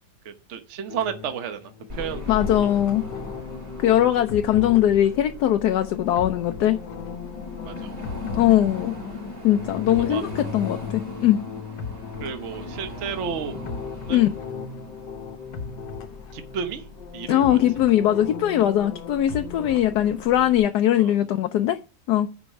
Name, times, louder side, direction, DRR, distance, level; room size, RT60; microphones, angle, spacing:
voice 1, 0.2-2.3 7.6-7.9 10.0-10.2 12.2-13.6 14.1-14.2 16.3-16.8 17.1-17.6 21.0-21.2, right 7 dB, 50° right, 1.1 m, -32 dB
sound 1, 0.9-20.5, left 6 dB, 90° left, 1.5 m, -38 dB
Car passing by / Traffic noise roadway noise / Engine, 1.9-20.6, left 2 dB, 20° right, 4.7 m, -38 dB
voice 2, 2.3-3.0 3.8-6.8 8.4-8.9 9.4-11.4 14.1-14.3 17.3-21.8 22.1-22.3, left 12 dB, 75° left, 1.2 m, -20 dB
8.0 x 5.3 x 6.7 m
omnidirectional pair, 1.8 m